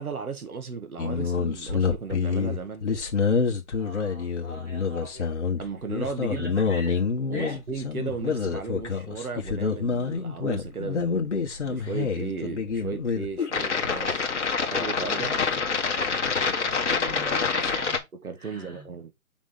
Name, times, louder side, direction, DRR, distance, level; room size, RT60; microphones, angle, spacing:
voice 1, 0.0-2.9 5.6-6.5 7.3-11.2 11.6-14.3 14.7-15.3 18.2-19.1, right 5 dB, 85° right, 1.9 m, -35 dB
sound 1, 1.0-18.0, left 5 dB, 55° left, 1.5 m, -27 dB
voice 2, 3.7-5.4 6.3-7.1 7.3-7.6 15.1-15.6 16.2-18.0 18.4-18.9, equal, 15° right, 1.9 m, -41 dB
6.0 x 4.2 x 3.8 m
hypercardioid pair, 170°, 42 cm